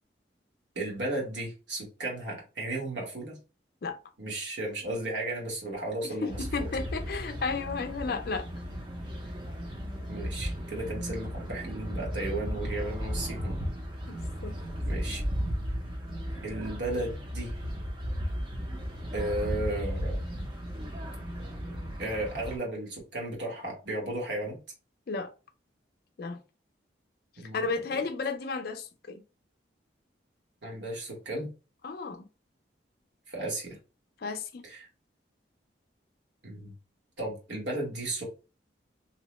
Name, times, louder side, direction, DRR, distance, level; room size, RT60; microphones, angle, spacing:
voice 1, 0.7-3.4 4.2-6.7 10.1-13.5 14.9-15.2 16.4-17.5 19.1-20.2 22.0-24.6 27.4-27.6 30.6-31.5 33.3-33.8 34.6-34.9 36.4-36.7 37.2-38.2, right 2 dB, 70° right, 1.2 m, -34 dB
voice 2, 6.0-8.5 14.1-14.5 25.1-25.3 26.2-26.4 27.5-29.2 31.8-32.2 34.2-34.6, left 4 dB, 55° left, 0.4 m, -33 dB
sound 1, 6.3-22.6, equal, 25° right, 0.5 m, -35 dB
2.8 x 2.1 x 3.0 m
head